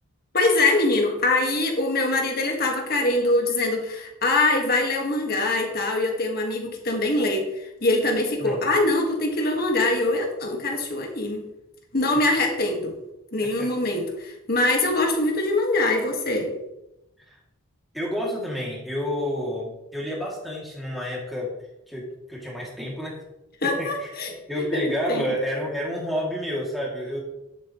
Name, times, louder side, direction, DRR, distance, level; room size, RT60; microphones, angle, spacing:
voice 1, 0.3-11.4 11.9-12.9 13.3-16.5 23.6-25.3, left 2 dB, 45° left, 2 dB, 1.7 m, -23 dB
voice 2, 17.9-21.5 21.9-23.2 23.6-24.1 24.5-27.2, equal, ahead, -5 dB, 2.5 m, -30 dB
11.0 x 7.7 x 3.1 m, 0.90 s
head